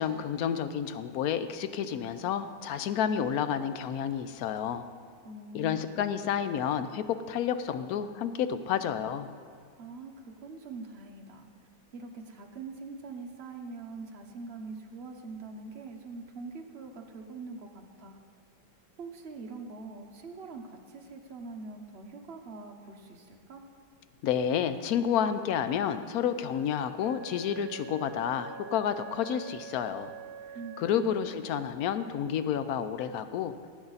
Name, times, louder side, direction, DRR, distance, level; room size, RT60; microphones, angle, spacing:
voice 1, 0.0-4.8 5.5-9.3 24.2-30.1 30.8-33.6, left 8 dB, 70° left, 11 dB, 0.9 m, -30 dB
voice 2, 5.2-6.0 9.8-18.2 19.0-23.7 30.5-31.1, right 3 dB, 40° right, 2 dB, 1.1 m, -43 dB
Wind instrument woodwind instrument, 27.0-31.6, right 6 dB, 60° right, 1.1 m, -46 dB
18.5 x 8.8 x 4.0 m, 2.1 s
omnidirectional pair, 2.0 m